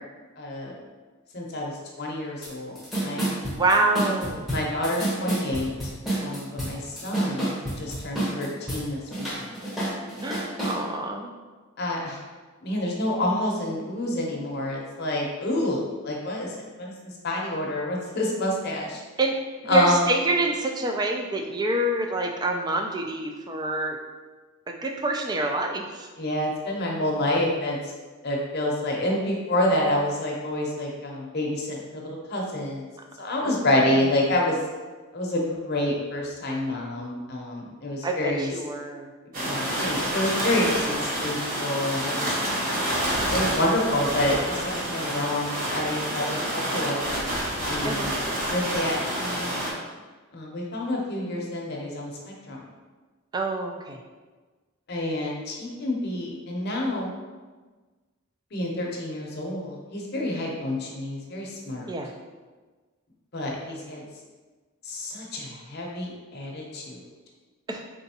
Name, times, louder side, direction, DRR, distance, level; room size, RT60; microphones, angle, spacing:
voice 1, 0.4-0.7 1.3-1.7 2.0-3.3 4.5-5.7 6.2-9.5 11.8-12.2 12.6-16.5 16.8-19.0 19.7-20.0 26.2-27.8 28.2-32.8 33.2-34.6 35.1-38.5 39.4-42.3 43.3-47.1 47.7-48.1 48.5-49.5 50.3-52.6 54.9-57.1 58.5-61.9 63.3-64.0 64.8-67.0, left 1 dB, 50° left, -2 dB, 0.7 m, -28 dB
sound 1, 2.4-2.5 2.8-8.8 9.1-10.8, right 1 dB, ahead, 0.8 m, -29 dB
voice 2, 3.5-4.5 10.2-11.3 19.2-19.4 19.7-24.0 24.7-26.1 33.4-33.7 38.0-39.1 47.8-48.2 53.3-54.0 61.9-62.1 67.7-67.8, right 2 dB, 20° right, 2 dB, 0.3 m, -27 dB
sound 2, 39.3-49.7, right 1 dB, 40° right, 0.7 m, -28 dB
3.8 x 3.4 x 2.8 m, 1.3 s
head